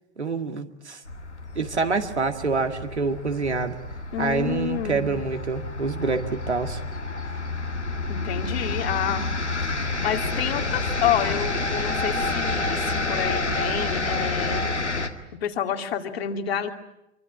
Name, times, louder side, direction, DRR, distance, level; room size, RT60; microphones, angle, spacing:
voice 1, 0.2-1.0 1.6-3.8 4.2-6.8, right 4 dB, 80° right, 5 dB, 2.2 m, -26 dB
sound 1, 1.0-15.1, left 3 dB, 85° left, 2.1 m, -29 dB
voice 2, 4.1-5.0 8.1-9.3 9.6-14.6 15.4-16.7, left 9 dB, 65° left, 4 dB, 2.7 m, -28 dB
26.5 x 24.5 x 8.6 m, 0.87 s
figure-of-eight pair, 85°, 33 cm